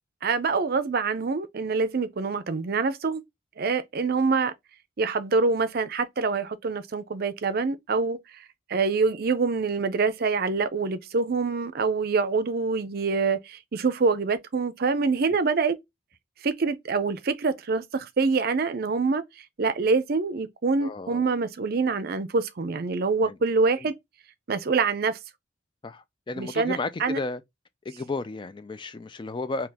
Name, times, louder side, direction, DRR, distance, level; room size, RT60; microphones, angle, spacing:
voice 1, 0.2-3.2 3.6-4.5 5.0-8.2 8.7-15.8 16.4-19.2 19.6-23.9 24.5-25.2 26.4-27.2, right 4 dB, 50° right, 0.5 m, -25 dB
voice 2, 20.8-21.2 23.2-23.4 23.8-23.9 25.8-27.4 27.9-29.7, left 3 dB, 25° left, 0.3 m, -33 dB
3.9 x 2.8 x 2.7 m
head